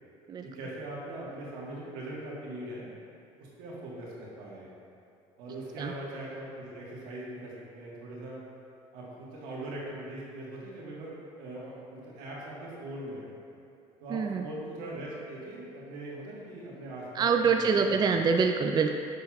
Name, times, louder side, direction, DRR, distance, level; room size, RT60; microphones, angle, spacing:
voice 1, 0.4-2.9 3.4-4.7 5.4-8.4 8.9-11.1 11.4-13.3 14.0-17.9, right 1 dB, 85° right, -5 dB, 1.4 m, -41 dB
voice 2, 14.1-14.5 17.1-18.9, right 5 dB, 30° right, 4 dB, 0.3 m, -25 dB
6.8 x 6.3 x 2.3 m, 2.6 s
supercardioid pair, 80°, 13 cm